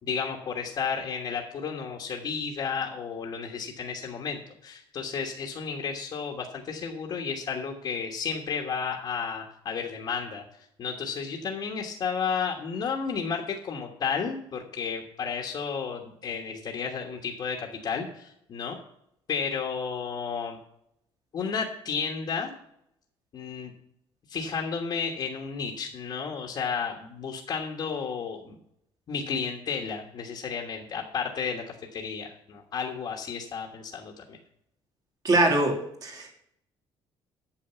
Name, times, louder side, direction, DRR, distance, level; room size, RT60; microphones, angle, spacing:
voice 1, 0.0-10.4 10.8-18.8 19.3-20.6 21.3-22.5 23.3-23.7 24.3-28.6 29.1-34.4, left 6 dB, 45° left, 0 dB, 1.4 m, -32 dB
voice 2, 35.2-36.3, right 2 dB, 35° right, 2 dB, 2.6 m, -23 dB
8.9 x 6.8 x 7.0 m, 0.75 s
cardioid pair, 135°, 10 cm